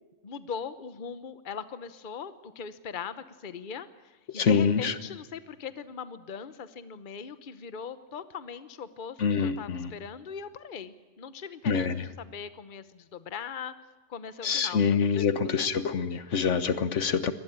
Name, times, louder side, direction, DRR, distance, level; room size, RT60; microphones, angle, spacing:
voice 1, 0.0-13.7 14.1-15.3 15.6-15.7, left 6 dB, 45° left, 12 dB, 1.1 m, -40 dB
voice 2, 4.3-4.9 9.2-9.9 11.7-12.0 14.4-17.3, left 6 dB, 70° left, 12 dB, 1.4 m, -25 dB
23.5 x 19.5 x 8.9 m, 1.2 s
omnidirectional pair, 1.3 m